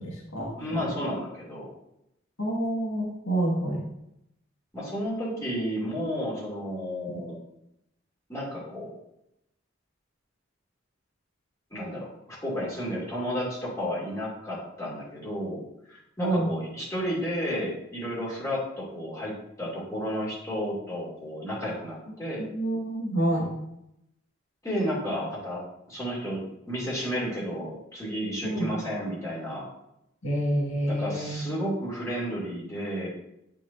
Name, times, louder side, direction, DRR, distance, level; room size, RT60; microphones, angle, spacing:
voice 1, 0.0-0.5 2.4-3.8 7.1-7.2 16.2-16.5 22.5-23.5 28.4-28.7 30.2-31.4, right 1 dB, 85° left, -4 dB, 2.0 m, -28 dB
voice 2, 0.6-1.7 4.7-7.4 8.3-8.9 11.7-15.6 15.9-22.5 24.6-25.6 25.9-29.7 30.9-33.1, equal, 15° left, -7 dB, 2.6 m, -32 dB
10.0 x 4.8 x 2.7 m, 0.82 s
head